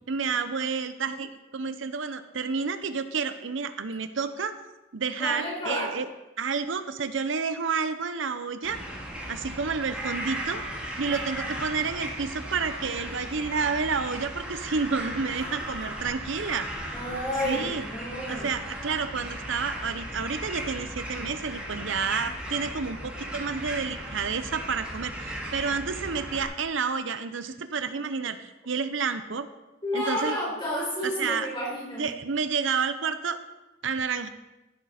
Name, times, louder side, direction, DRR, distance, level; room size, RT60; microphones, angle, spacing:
voice 1, 0.1-4.5 4.9-6.1 6.4-8.8 9.3-10.6 11.0-16.7 17.4-17.8 18.3-29.5 29.9-30.4 31.0-31.5 32.0-33.4 33.8-34.3, right 5 dB, 85° right, 11 dB, 0.7 m, -30 dB
voice 2, 5.2-5.9 11.1-11.2 16.9-18.5 29.8-32.1, equal, 25° left, -4 dB, 4.0 m, -31 dB
sound 1, 8.6-26.4, right 1 dB, 5° right, 2.2 m, -36 dB
15.0 x 6.7 x 4.2 m, 1.0 s
head